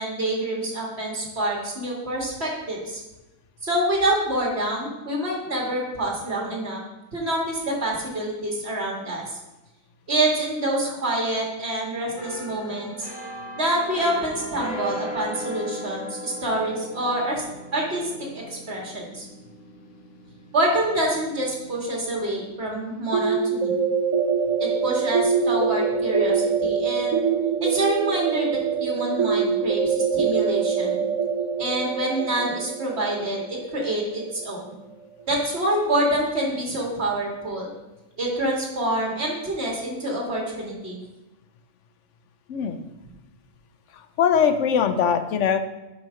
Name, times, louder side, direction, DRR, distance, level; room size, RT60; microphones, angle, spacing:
voice 1, 0.0-3.0 3.6-6.8 7.1-9.4 10.1-13.1 13.6-17.4 17.7-18.0 18.3-19.3 20.5-23.8 24.6-27.2 27.6-31.0 31.6-34.7 35.3-37.7 38.2-41.0, right 1 dB, 50° right, -2 dB, 2.3 m, -26 dB
sound 1, 12.2-23.7 24.1-24.4, equal, 40° left, 1.3 m, -38 dB
sound 2, 23.1-34.8, right 6 dB, 75° right, 1.1 m, -24 dB
voice 2, 42.5-42.8 44.2-45.6, left 7 dB, 65° left, 9 dB, 1.0 m, -21 dB
6.0 x 5.6 x 5.9 m, 1.0 s
omnidirectional pair, 1.4 m